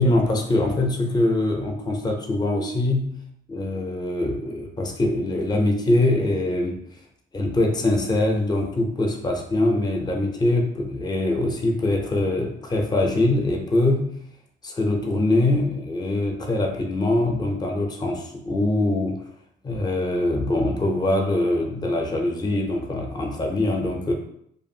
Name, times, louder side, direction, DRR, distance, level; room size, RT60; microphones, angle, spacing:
voice 1, 0.0-3.2 3.5-6.8 7.3-14.1 14.6-19.3 19.6-24.1, left 2 dB, 20° left, 2 dB, 0.5 m, -23 dB
2.5 x 2.5 x 2.7 m, 0.71 s
cardioid pair, 90°, 20 cm